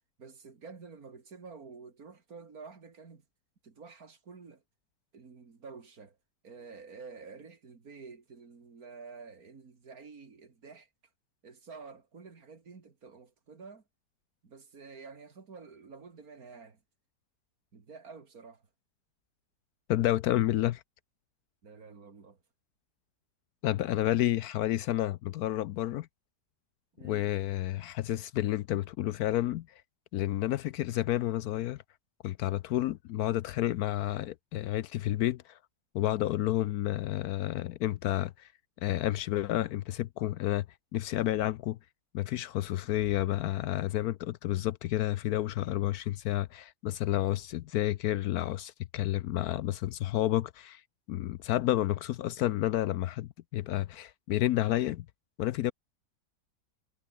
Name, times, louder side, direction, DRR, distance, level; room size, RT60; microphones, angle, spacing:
voice 1, 0.2-3.2 3.6-4.6 5.1-6.2 6.4-10.9 11.4-13.8 14.4-16.8 17.7-18.6 21.6-22.4 27.0-27.3, right 5 dB, 55° right, 2.8 m, -49 dB
voice 2, 19.9-20.8 23.6-26.1 27.0-29.7 30.1-31.8 32.2-35.6 35.9-38.5 38.8-40.7 40.9-41.8 42.1-50.8 51.1-55.1 55.4-55.7, left 14 dB, 70° left, 1.0 m, -30 dB
omnidirectional pair, 1.8 m